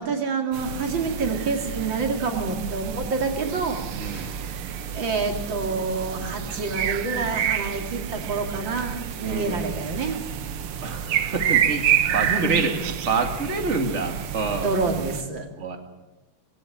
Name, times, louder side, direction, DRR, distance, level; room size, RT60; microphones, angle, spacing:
voice 1, 0.0-4.7 4.9-10.2 12.2-12.7 14.6-15.5, right 4 dB, 60° right, 4 dB, 3.4 m, -28 dB
sound 1, 0.5-15.2, right 9 dB, 90° right, 2.0 m, -29 dB
voice 2, 3.9-4.3 9.2-9.6 10.8-14.8 15.6-15.8, right 4 dB, 35° right, 5 dB, 2.4 m, -27 dB
20.5 x 17.0 x 8.8 m, 1.1 s
omnidirectional pair, 2.3 m